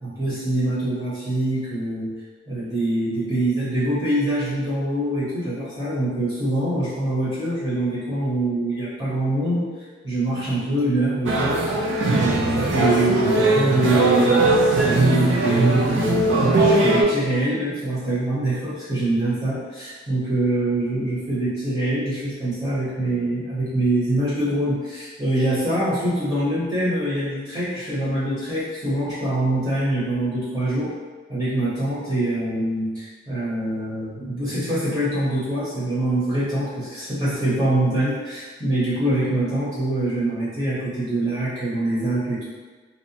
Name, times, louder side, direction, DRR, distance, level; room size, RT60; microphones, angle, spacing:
voice 1, 0.0-2.1 2.5-11.6 12.1-14.4 14.8-30.9 31.3-42.5, right 1 dB, 25° right, -11 dB, 0.8 m, -24 dB
sound 1, 11.3-17.0, right 2 dB, 75° right, 0.4 m, -19 dB
2.6 x 2.1 x 2.7 m, 1.4 s
head